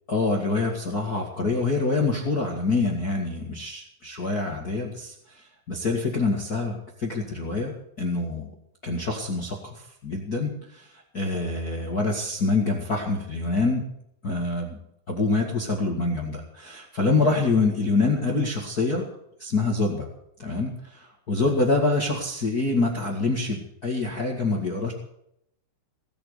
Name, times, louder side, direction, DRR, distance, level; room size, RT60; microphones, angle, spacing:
voice 1, 0.1-5.1 5.7-7.7 8.0-8.5 8.8-13.9 14.2-14.8 15.1-19.1 19.4-20.1 20.4-24.9, left 3 dB, 55° left, 0 dB, 1.0 m, -26 dB
18.5 x 8.5 x 8.2 m, 0.75 s
omnidirectional pair, 5.3 m